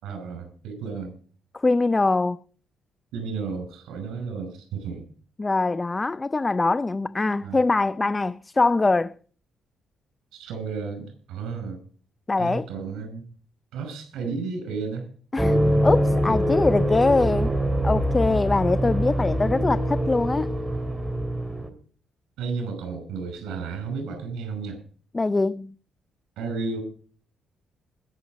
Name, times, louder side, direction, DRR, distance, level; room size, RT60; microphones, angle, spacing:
voice 1, 0.0-1.1 3.1-5.0 7.4-7.6 10.3-11.8 12.4-13.2 13.7-15.1 22.4-24.8 26.4-26.8, right 4 dB, 85° right, 5.5 m, -32 dB
voice 2, 1.5-2.4 5.4-9.2 12.3-12.7 15.3-17.5 17.8-20.5 25.1-25.7, left 3 dB, 20° left, 0.5 m, -23 dB
sound 1, 15.4-21.7, equal, 10° right, 3.1 m, -24 dB
20.5 x 7.0 x 5.0 m
cardioid pair, 90°, 0 cm